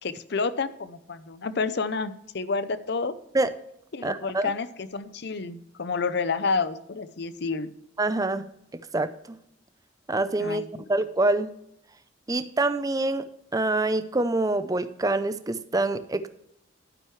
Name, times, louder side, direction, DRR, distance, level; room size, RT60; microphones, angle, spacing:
voice 1, 0.0-3.1 3.9-7.7 10.4-10.8, left 4 dB, 60° left, 14 dB, 0.6 m, -29 dB
voice 2, 4.0-4.5 8.0-8.5 8.9-9.1 10.1-10.6 10.9-11.5 12.3-13.2 13.5-16.3, right 2 dB, 20° right, 12 dB, 0.5 m, -25 dB
11.5 x 9.3 x 3.2 m, 0.75 s
head